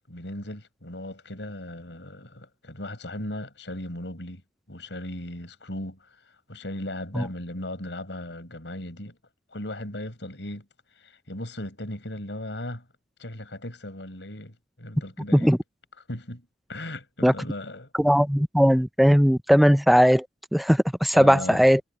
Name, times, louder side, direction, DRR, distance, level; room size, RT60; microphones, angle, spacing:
voice 1, 0.1-4.4 4.7-6.1 6.5-9.2 9.5-10.7 11.0-12.9 13.2-15.6 16.1-17.9 21.1-21.7, left 1 dB, 80° left, 5.8 m, -37 dB
voice 2, 18.0-20.3 20.5-21.8, equal, ahead, 0.3 m, -18 dB
head